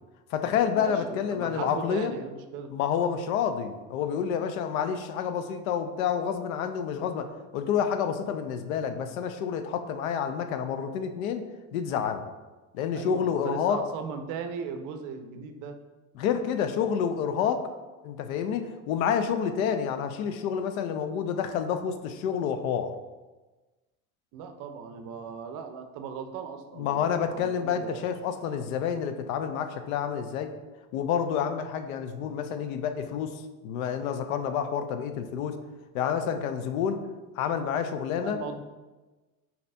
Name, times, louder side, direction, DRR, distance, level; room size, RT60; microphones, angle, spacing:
voice 1, 0.3-2.1 2.7-11.5 11.7-12.3 12.7-13.8 16.2-17.6 18.0-22.9 26.8-30.5 30.9-35.6 35.9-37.0 37.4-38.4, left 7 dB, 75° left, 9 dB, 0.5 m, -29 dB
voice 2, 0.8-2.7 12.9-15.8 24.3-28.1 38.2-38.6, right 6 dB, 50° right, 7 dB, 0.5 m, -38 dB
4.0 x 2.8 x 3.3 m, 1.2 s
hypercardioid pair, 95°, 42 cm